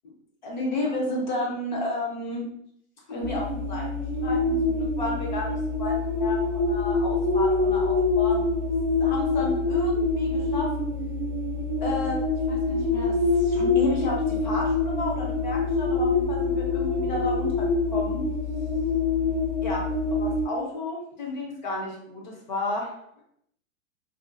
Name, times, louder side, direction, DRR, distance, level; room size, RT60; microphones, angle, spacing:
voice 1, 0.4-2.5 3.1-8.5 9.0-10.7 11.8-12.2 12.5-18.2 19.6-19.8 20.1-22.9, left 2 dB, 35° left, -1 dB, 0.5 m, -32 dB
sound 1, 3.2-20.4, left 3 dB, 20° right, 0.5 m, -25 dB
2.4 x 2.2 x 2.5 m, 0.71 s
supercardioid pair, 175°, 41 cm